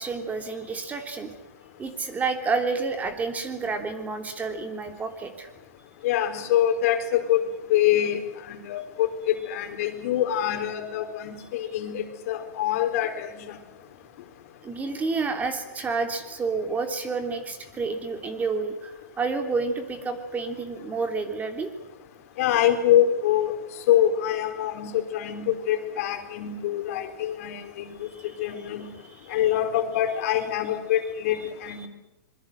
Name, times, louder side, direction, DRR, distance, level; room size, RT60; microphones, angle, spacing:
voice 1, 0.0-1.3 1.8-5.5 14.6-21.7 28.1-28.2, right 4 dB, 15° right, 7 dB, 3.3 m, -29 dB
voice 2, 6.0-8.2 8.5-13.6 22.4-23.5 23.9-28.9 29.3-31.9, left 11 dB, 60° left, 6 dB, 4.1 m, -25 dB
25.5 x 22.5 x 8.0 m, 0.95 s
hypercardioid pair, 125°, 9 cm